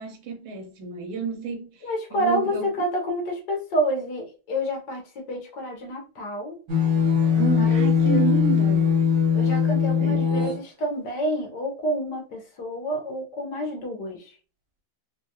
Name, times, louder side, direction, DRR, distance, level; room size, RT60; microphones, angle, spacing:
voice 1, 0.0-1.7 2.1-2.7 7.3-9.0 10.0-10.3, right 6 dB, 80° right, 1.4 m, -29 dB
voice 2, 1.8-5.0 5.3-6.6 7.6-8.3 9.3-14.3, equal, 65° left, 1.2 m, -28 dB
sound 1, 6.7-10.6, left 7 dB, 55° right, 1.5 m, -20 dB
3.4 x 2.3 x 2.7 m
omnidirectional pair, 2.2 m